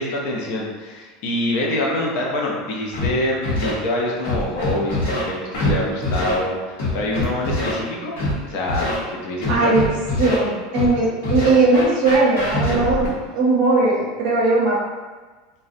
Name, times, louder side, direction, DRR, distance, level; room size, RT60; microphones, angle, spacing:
voice 1, 0.0-8.2 8.4-9.9, left 1 dB, 45° left, -2 dB, 0.4 m, -25 dB
Scratching (performance technique), 2.9-3.1 3.4-3.7 4.2-5.2 5.5-5.7 6.0-6.3 6.8-7.7 8.2-8.3 8.7-8.9 9.4-10.4 10.7-10.9 11.2-13.1, left 2 dB, 85° left, 0.9 m, -23 dB
voice 2, 9.5-9.9 10.2-14.8, right 3 dB, 50° right, -4 dB, 0.6 m, -18 dB
2.5 x 2.1 x 2.5 m, 1.3 s
supercardioid pair, 180°, 0 cm